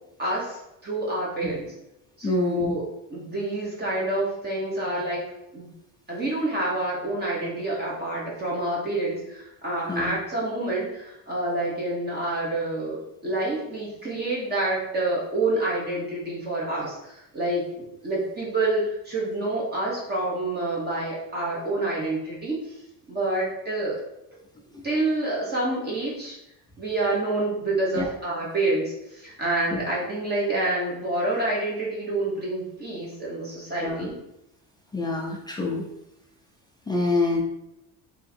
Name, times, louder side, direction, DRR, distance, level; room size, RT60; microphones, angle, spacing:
voice 1, 0.2-1.7 2.2-5.2 5.5-5.7 6.1-22.6 23.1-24.0 24.8-26.4 26.8-34.1, right 2 dB, 25° right, -5 dB, 1.1 m, -28 dB
voice 2, 2.2-2.7 9.9-10.1 27.9-28.1 29.7-29.8 33.8-34.1 34.9-35.9 36.9-37.4, left 3 dB, 10° left, -2 dB, 0.4 m, -26 dB
3.7 x 2.8 x 4.2 m, 0.84 s
cardioid pair, 150°, 37 cm